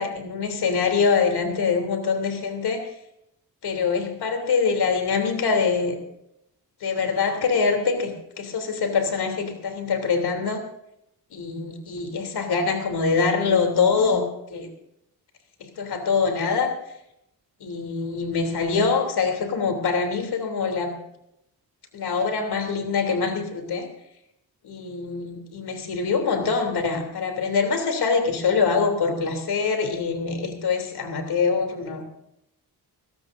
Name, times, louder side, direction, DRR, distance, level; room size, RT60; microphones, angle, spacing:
voice 1, 0.0-2.9 3.6-6.0 6.8-10.6 11.3-14.7 15.6-16.7 17.6-21.0 21.9-23.9 24.6-32.0, left 5 dB, 75° left, 5 dB, 3.3 m, -24 dB
20.5 x 17.0 x 2.7 m, 0.79 s
cardioid pair, 75°, 39 cm